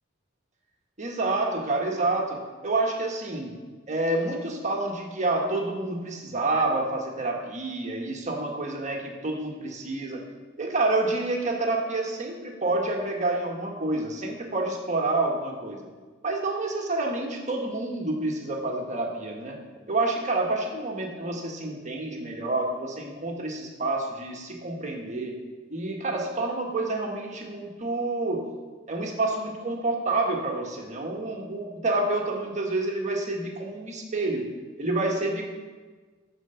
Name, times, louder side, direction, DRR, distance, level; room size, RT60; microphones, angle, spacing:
voice 1, 1.0-3.6 3.9-10.2 10.6-15.9 16.2-19.6 19.9-25.4 25.7-28.5 28.9-34.5 34.8-35.4, right 2 dB, 35° right, 0 dB, 1.4 m, -28 dB
13.5 x 4.7 x 6.8 m, 1.4 s
head